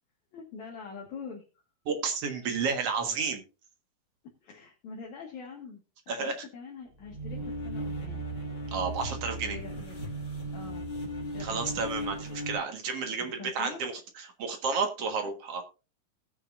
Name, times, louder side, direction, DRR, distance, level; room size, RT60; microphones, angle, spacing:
voice 1, 0.3-1.4 4.4-8.2 9.4-10.0 10.5-10.9 11.3-11.6 13.2-13.9, left 4 dB, 60° left, -2 dB, 3.0 m, -44 dB
voice 2, 1.9-3.4 6.1-6.5 8.7-9.6 11.4-13.9 14.4-15.6, right 5 dB, 55° right, 5 dB, 2.0 m, -31 dB
sound 1, 7.0-12.6, right 1 dB, 25° left, 2.1 m, -36 dB
19.0 x 6.6 x 2.5 m, 0.31 s
omnidirectional pair, 4.2 m